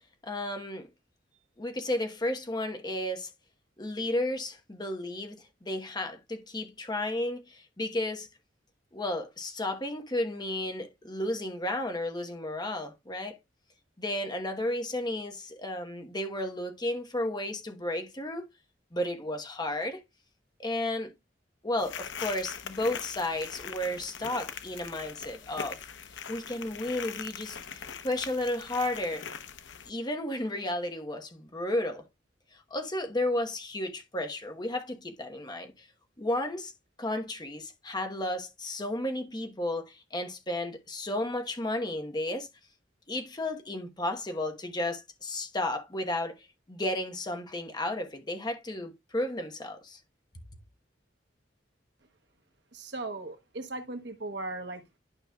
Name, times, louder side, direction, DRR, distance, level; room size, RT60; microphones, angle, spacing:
voice 1, 0.2-0.9 1.6-3.3 3.8-8.3 8.9-13.4 14.0-18.5 18.9-20.0 20.6-21.1 21.6-25.8 26.3-29.3 29.9-32.1 32.5-35.9 36.2-36.7 37.0-42.5 43.1-50.0, left 1 dB, 25° left, 1.1 m, -33 dB
sound 1, 21.8-29.9, left 7 dB, 90° left, 0.8 m, -41 dB
voice 2, 52.7-54.8, right 2 dB, 65° right, 1.2 m, -37 dB
12.0 x 5.3 x 2.3 m
head